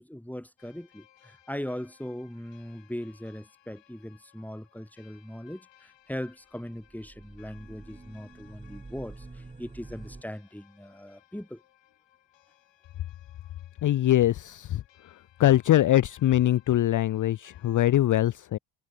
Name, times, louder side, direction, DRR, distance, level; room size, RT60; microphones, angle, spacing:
voice 1, 0.0-9.3 9.6-11.6, equal, 5° left, 6.6 m, -39 dB
sound 1, 0.6-17.9, left 13 dB, 65° left, 7.6 m, -62 dB
sound 2, 6.7-10.2, right 3 dB, 15° right, 1.7 m, -47 dB
voice 2, 13.8-14.8 15.4-18.6, left 13 dB, 40° left, 0.6 m, -22 dB
hypercardioid pair, 55°, 47 cm